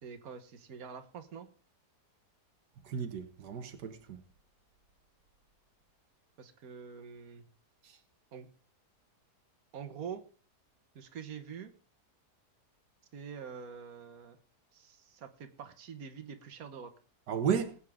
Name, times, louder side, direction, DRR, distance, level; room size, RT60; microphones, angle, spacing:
voice 1, 0.0-1.5 6.4-7.5 8.3-8.5 9.7-10.3 10.9-11.7 13.1-14.4 14.7-16.9, right 7 dB, 60° right, 1.7 m, -45 dB
voice 2, 2.8-4.2 7.8-8.0 17.3-17.8, right 7 dB, 85° right, 1.7 m, -33 dB
20.0 x 8.4 x 3.6 m
omnidirectional pair, 1.7 m